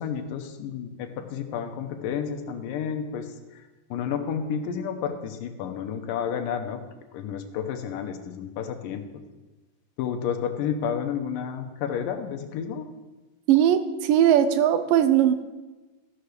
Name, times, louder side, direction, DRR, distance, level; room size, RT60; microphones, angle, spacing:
voice 1, 0.0-3.6 3.9-6.8 7.1-9.0 10.0-12.9, left 7 dB, 80° left, 6 dB, 2.5 m, -31 dB
voice 2, 13.5-15.3, right 10 dB, 80° right, 10 dB, 2.3 m, -19 dB
15.0 x 5.8 x 6.6 m, 1.2 s
omnidirectional pair, 4.0 m